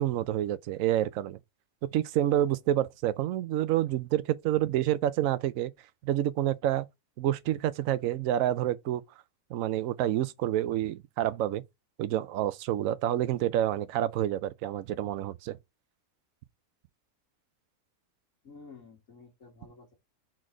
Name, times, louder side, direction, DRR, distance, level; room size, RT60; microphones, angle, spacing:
voice 1, 0.0-1.4 1.9-5.7 6.0-6.9 7.2-9.0 9.5-11.6 12.0-15.6, right 12 dB, 70° right, 0.9 m, -28 dB
voice 2, 18.4-19.9, left 4 dB, 55° left, 2.3 m, -51 dB
4.5 x 4.3 x 4.8 m
omnidirectional pair, 1.7 m